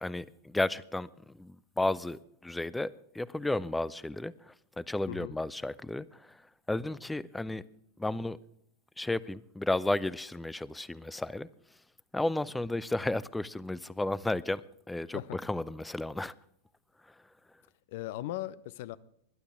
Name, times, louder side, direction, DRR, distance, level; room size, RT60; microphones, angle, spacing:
voice 1, 0.0-1.1 1.4-6.4 6.7-7.6 8.0-8.4 9.0-11.5 12.1-14.6 14.9-16.3, left 2 dB, 5° left, 0.5 m, -33 dB
voice 2, 17.9-19.0, left 14 dB, 50° left, 0.6 m, -38 dB
20.5 x 11.5 x 3.6 m
figure-of-eight pair, 90°, 0 cm